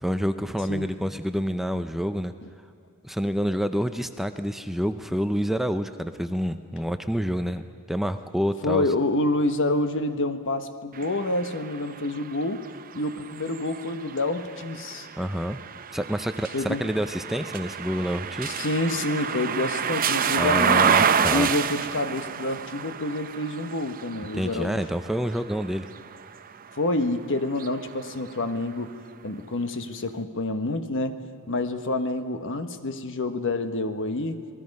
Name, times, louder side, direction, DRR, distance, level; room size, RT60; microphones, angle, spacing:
voice 1, 0.0-2.3 3.0-7.6 7.9-8.9 15.2-15.6 15.9-18.6 20.4-21.5 24.3-25.9, equal, ahead, 8 dB, 0.5 m, -28 dB
voice 2, 8.6-12.6 12.9-15.1 16.5-16.8 18.4-21.0 21.3-24.8 26.8-28.9 29.2-31.2 31.5-34.4, left 2 dB, 60° left, 9 dB, 1.2 m, -28 dB
sound 1, 10.9-26.9 27.4-28.7, right 7 dB, 40° right, 0.6 m, -29 dB
27.0 x 19.5 x 5.4 m, 2.6 s
head